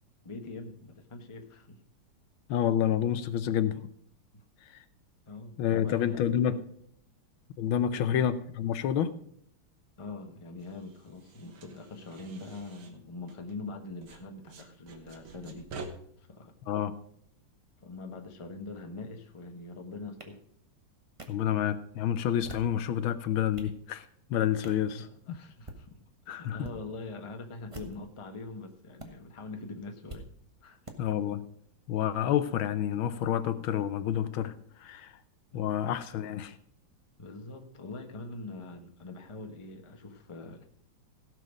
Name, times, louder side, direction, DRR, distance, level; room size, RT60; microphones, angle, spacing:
voice 1, 0.2-1.8 4.3-4.4 5.3-6.6 8.0-8.2 10.0-15.7 16.2-16.5 17.8-20.4 24.6-26.0 26.2-30.3 30.6-30.8 35.5-35.7 37.2-40.6, left 3 dB, 20° left, 4 dB, 0.9 m, -43 dB
voice 2, 2.5-3.9 4.7-4.8 5.6-6.6 7.6-9.1 16.7-17.0 21.3-25.4 26.3-26.7 31.0-31.5 31.9-35.2 35.5-36.6, left 10 dB, 75° left, 13 dB, 1.5 m, -29 dB
sound 1, 10.6-13.7 14.0-15.9, right 4 dB, 80° right, 2.2 m, -48 dB
sound 2, 20.2-20.3 21.2-21.3 22.3-22.8 23.3-23.8 24.6-24.8 25.5-25.8 26.6-26.8 27.6-28.1 29.0-29.1 30.1-30.2 30.8-31.0, right 2 dB, 20° right, 1.1 m, -45 dB
16.5 x 6.3 x 5.1 m, 0.65 s
omnidirectional pair, 2.3 m